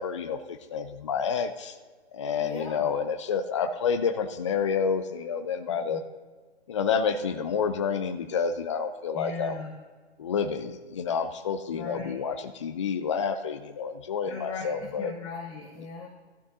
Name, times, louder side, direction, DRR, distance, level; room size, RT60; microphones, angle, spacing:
voice 1, 0.0-1.7 2.1-6.0 6.7-9.6 10.2-15.1, left 6 dB, 25° left, 9 dB, 0.5 m, -29 dB
voice 2, 2.4-2.9 5.7-6.0 9.1-9.7 11.7-12.2 14.3-16.1, left 4 dB, 10° left, -5 dB, 1.0 m, -38 dB
16.5 x 13.0 x 2.7 m, 1.4 s
figure-of-eight pair, 140°, 34 cm